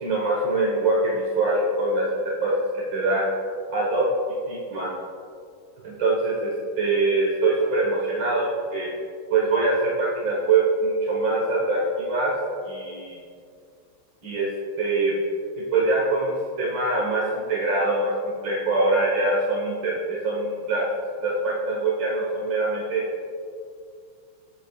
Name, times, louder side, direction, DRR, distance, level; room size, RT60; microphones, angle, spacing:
voice 1, 0.0-2.0 2.4-3.2 3.7-4.1 4.5-4.9 5.8-8.9 9.3-12.3 12.7-13.2 14.2-14.5 14.8-15.2 15.7-18.1 18.4-20.9 21.2-23.0, right 2 dB, 60° right, -4 dB, 2.0 m, -23 dB
15.5 x 9.0 x 2.4 m, 2.3 s
omnidirectional pair, 2.3 m